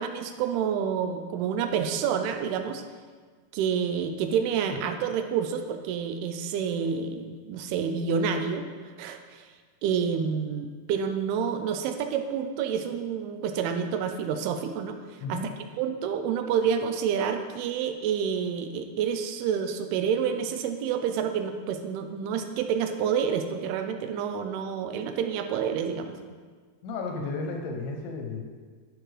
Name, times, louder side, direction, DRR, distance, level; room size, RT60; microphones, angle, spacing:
voice 1, 0.0-2.8 3.5-8.7 9.0-9.4 9.8-15.0 15.3-15.4 15.8-26.2, right 7 dB, 85° right, 7 dB, 2.5 m, -28 dB
voice 2, 26.8-28.4, left 3 dB, 75° left, 2 dB, 2.3 m, -33 dB
10.5 x 6.0 x 3.3 m, 1.5 s
omnidirectional pair, 4.7 m